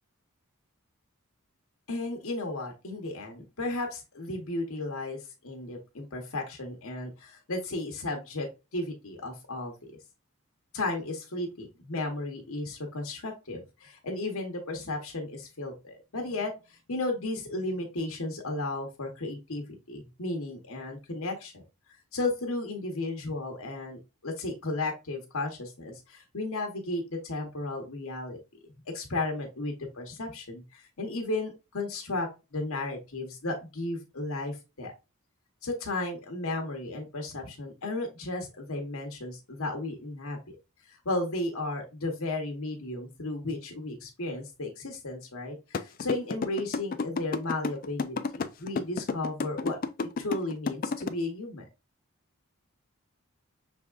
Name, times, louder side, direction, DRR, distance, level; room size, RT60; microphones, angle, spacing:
voice 1, 1.9-8.5 8.7-9.9 10.7-21.6 22.1-28.4 28.9-34.9 35.6-40.6 40.8-49.8 50.2-51.6, left 2 dB, 75° left, 2 dB, 1.0 m, -34 dB
sound 1, 45.7-51.1, left 4 dB, 40° left, 0.3 m, -30 dB
5.9 x 3.5 x 2.3 m, 0.27 s
head